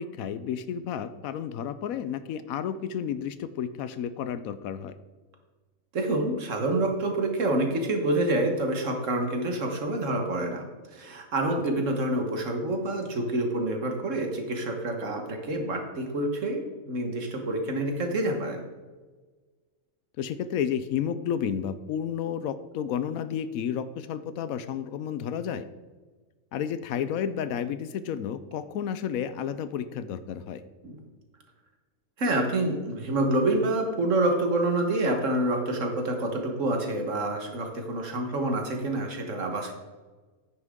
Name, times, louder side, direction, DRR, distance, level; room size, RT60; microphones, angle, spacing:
voice 1, 0.0-5.0 20.2-25.7 26.5-30.6, left 8 dB, 85° left, 13 dB, 1.1 m, -31 dB
voice 2, 5.9-10.7 10.9-18.6 30.8-31.0 32.2-39.7, right 1 dB, 65° right, 3 dB, 1.8 m, -27 dB
9.8 x 9.8 x 3.7 m, 1.3 s
omnidirectional pair, 1.4 m